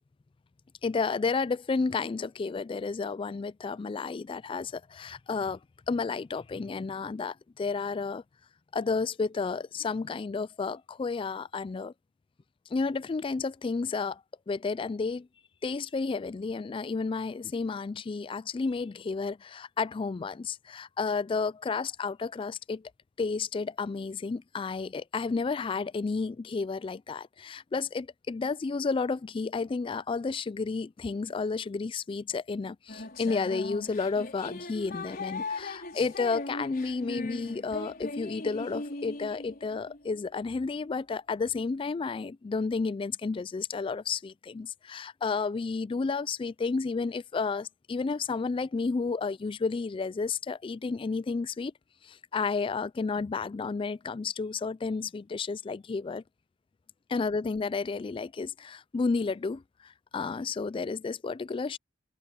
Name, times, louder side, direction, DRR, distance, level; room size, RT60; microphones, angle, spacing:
voice 1, 0.8-5.6 5.9-8.2 8.7-11.9 12.7-14.2 14.5-15.3 15.6-22.8 23.2-51.7 52.0-56.2 57.1-61.8, left 4 dB, 25° left, 0.3 m, -31 dB
sound 1, 32.9-40.3, left 2 dB, 50° left, 5.4 m, -39 dB
head